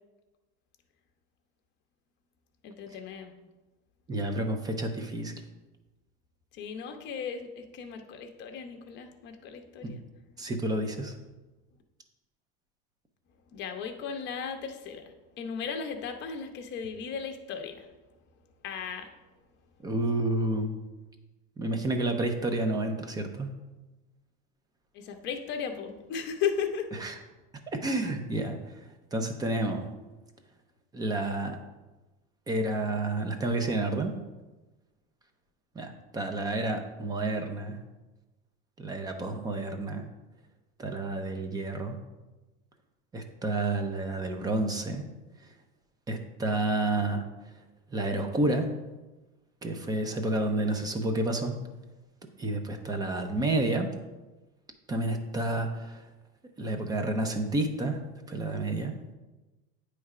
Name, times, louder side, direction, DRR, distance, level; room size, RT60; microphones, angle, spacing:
voice 1, 2.6-3.3 6.5-10.0 10.3-10.4 13.5-15.0 15.4-17.9 18.6-19.1 24.9-26.9, left 7 dB, 35° left, 5 dB, 0.8 m, -36 dB
voice 2, 4.1-5.3 9.8-10.0 10.4-11.1 19.8-20.8 21.6-23.5 27.0-27.1 27.7-28.6 29.1-29.9 30.9-31.6 32.5-34.2 35.8-37.8 38.8-40.1 40.8-42.0 43.1-45.0 46.1-47.3 47.9-48.7 49.6-51.6 52.4-53.9 54.9-56.0 56.6-58.0 58.3-58.9, right 2 dB, 15° right, 6 dB, 0.5 m, -30 dB
9.3 x 3.3 x 4.8 m, 1.1 s
supercardioid pair, 150°, 30 cm